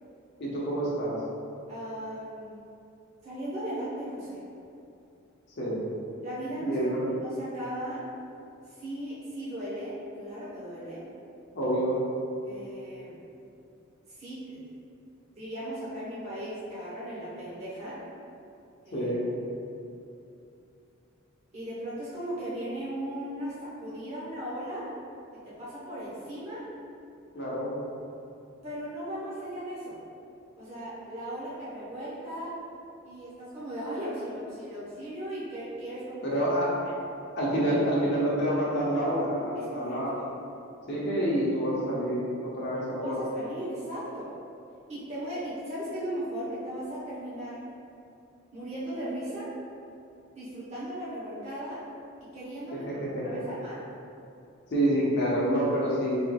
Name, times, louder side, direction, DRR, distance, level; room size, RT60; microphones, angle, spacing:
voice 1, 0.4-1.1 5.6-5.8 6.6-7.0 11.5-12.0 18.9-19.2 27.3-27.7 36.2-36.7 37.3-40.1 40.9-43.2 53.1-53.4 54.7-56.3, right 1 dB, 55° left, -6 dB, 0.9 m, -27 dB
voice 2, 1.7-2.5 3.2-4.4 6.2-8.0 8.7-11.0 12.4-13.2 14.1-14.6 15.3-18.0 18.8-19.1 21.5-24.9 25.4-26.6 28.6-30.0 30.6-32.5 33.0-36.2 36.8-36.9 39.5-40.3 43.0-44.3 44.9-47.6 48.5-49.5 50.3-51.8 52.3-52.9 53.2-53.8, right 1 dB, 30° right, -10 dB, 0.8 m, -37 dB
4.6 x 4.0 x 2.2 m, 2.7 s
head